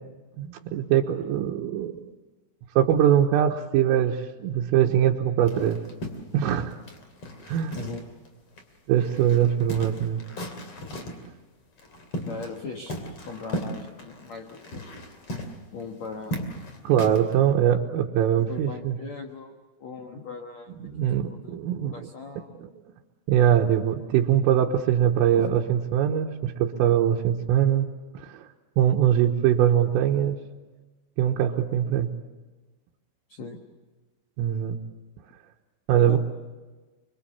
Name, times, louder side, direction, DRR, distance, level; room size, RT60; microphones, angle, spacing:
voice 1, 0.4-2.1 2.8-5.8 6.3-6.8 7.5-7.8 8.9-10.2 16.9-19.0 20.8-21.9 23.3-27.9 28.2-28.5 28.8-30.4 31.2-32.1 34.4-34.8 35.9-36.2, right 10 dB, 85° right, -1 dB, 3.8 m, -22 dB
sound 1, 5.4-8.3 8.6-8.7 9.0-11.3 11.8-12.6 12.9-17.3, equal, 35° left, 2.8 m, -36 dB
voice 2, 12.2-12.9 13.2-14.8 15.7-16.3 18.4-19.5 19.8-21.6 21.9-22.6 25.4-25.5 33.3-33.6 36.1-36.2, left 4 dB, 85° left, 3 dB, 1.5 m, -39 dB
25.5 x 24.5 x 7.1 m, 1.2 s
omnidirectional pair, 5.8 m